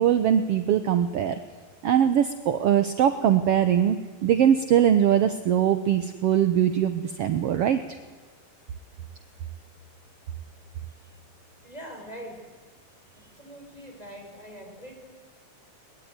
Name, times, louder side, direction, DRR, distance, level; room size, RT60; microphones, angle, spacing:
voice 1, 0.0-1.4 1.8-7.8, right 9 dB, 65° right, 9 dB, 1.8 m, -22 dB
voice 2, 11.6-12.5 13.2-15.1, equal, 10° left, 2 dB, 5.5 m, -43 dB
22.5 x 22.0 x 9.7 m, 1.4 s
omnidirectional pair, 3.4 m